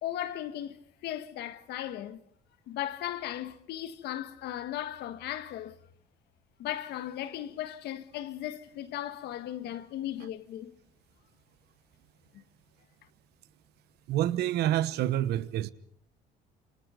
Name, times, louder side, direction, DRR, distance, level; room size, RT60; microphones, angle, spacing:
voice 1, 0.0-2.2 2.7-5.8 6.6-10.8 12.3-12.4, left 12 dB, 75° left, 1.6 m, -37 dB
voice 2, 14.1-15.7, right 12 dB, 75° right, 1.2 m, -27 dB
28.0 x 26.0 x 5.2 m
cardioid pair, 110°, 17 cm